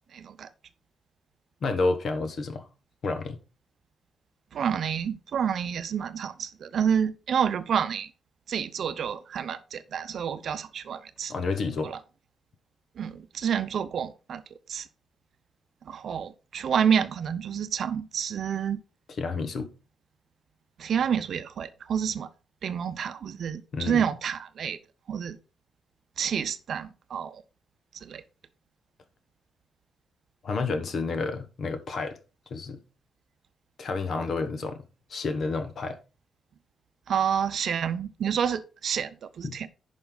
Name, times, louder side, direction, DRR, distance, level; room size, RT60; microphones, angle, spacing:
voice 1, 0.1-0.5 4.5-8.1 8.5-11.3 11.8-12.0 13.0-14.4 14.7-14.9 15.8-18.8 20.8-22.3 22.6-24.8 25.1-25.4 26.2-27.4 28.0-28.2 37.1-39.7, right 8 dB, 60° right, 0.7 m, -29 dB
voice 2, 1.6-2.7 3.0-3.4 11.3-11.9 19.2-19.7 23.7-24.0 30.4-32.2 32.5-32.8 33.8-34.8 35.1-36.0 39.4-39.6, left 3 dB, 50° left, 1.2 m, -30 dB
10.5 x 5.3 x 3.9 m
wide cardioid pair, 160°, 0 cm